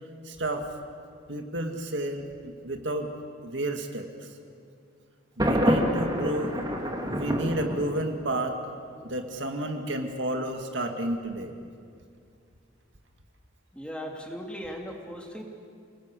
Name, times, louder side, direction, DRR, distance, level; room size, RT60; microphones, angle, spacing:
voice 1, 0.3-0.7 1.3-3.1 3.4-4.1 5.4-6.5 7.0-8.6 9.0-11.5, right 1 dB, 60° right, 4 dB, 2.2 m, -31 dB
Thunder, 5.4-8.4, equal, 20° right, 2.2 m, -27 dB
voice 2, 13.7-15.4, equal, 5° left, 0 dB, 2.7 m, -38 dB
29.5 x 20.5 x 8.4 m, 2.3 s
head